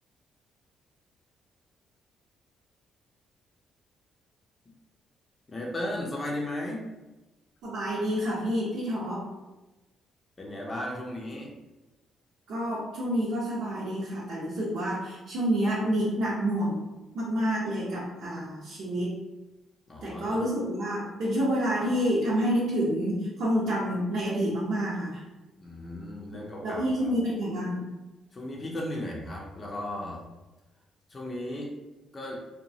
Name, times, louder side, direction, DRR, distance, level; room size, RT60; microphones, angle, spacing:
voice 1, 5.5-6.9 10.4-11.5 19.9-20.4 25.6-27.1 28.3-30.2 31.1-31.7 32.1-32.4, left 1 dB, 30° left, -2 dB, 0.5 m, -35 dB
voice 2, 7.6-9.3 12.5-16.8 17.1-19.2 20.0-25.2 26.3-27.9, equal, 80° right, -7 dB, 0.7 m, -28 dB
2.7 x 2.2 x 2.7 m, 1.1 s
cardioid pair, 90°, 0 cm